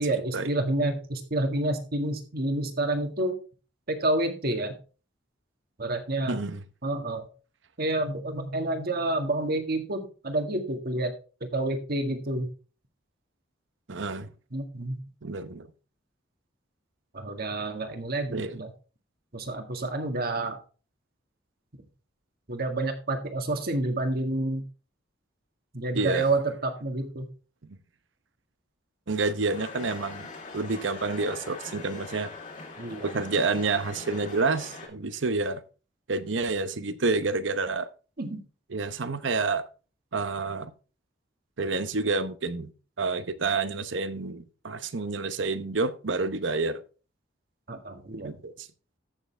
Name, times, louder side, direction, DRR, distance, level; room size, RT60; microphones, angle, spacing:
voice 1, 0.0-3.4 3.9-4.8 5.8-6.4 6.8-7.3 7.8-11.1 11.4-12.5 14.5-15.0 17.1-18.7 19.3-20.6 22.5-24.6 25.7-27.3 32.8-33.2 38.2-38.4 47.7-48.3, right 2 dB, 55° right, 6 dB, 1.8 m, -29 dB
voice 2, 6.3-6.6 13.9-14.3 15.2-15.7 18.3-18.6 25.9-26.3 27.7-27.8 29.1-30.3 30.5-32.3 33.0-35.6 36.1-37.9 38.7-39.6 40.1-40.7 41.6-42.7 43.0-46.8 48.1-48.7, right 3 dB, 70° right, 12 dB, 0.9 m, -29 dB
sound 1, 29.5-34.9, left 3 dB, 45° left, 2.8 m, -42 dB
14.0 x 6.6 x 3.4 m, 0.35 s
head